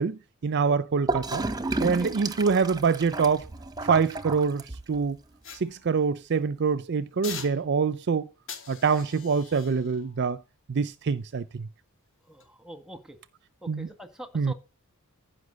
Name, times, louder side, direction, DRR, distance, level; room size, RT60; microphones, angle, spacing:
voice 1, 0.0-1.4 1.8-3.5 3.8-4.6 4.9-5.2 5.6-8.3 8.7-10.4 10.7-11.7 13.7-13.9 14.3-14.5, right 5 dB, 50° right, 0.5 m, -25 dB
Gurgling / Toilet flush, 1.1-5.1, right 3 dB, 20° right, 0.9 m, -32 dB
sound 1, 5.4-6.4 7.2-8.0 8.5-11.7 12.2-12.4, left 6 dB, 60° left, 3.3 m, -45 dB
voice 2, 12.3-13.2 13.6-14.5, right 1 dB, 5° right, 1.6 m, -44 dB
14.5 x 5.6 x 6.5 m
head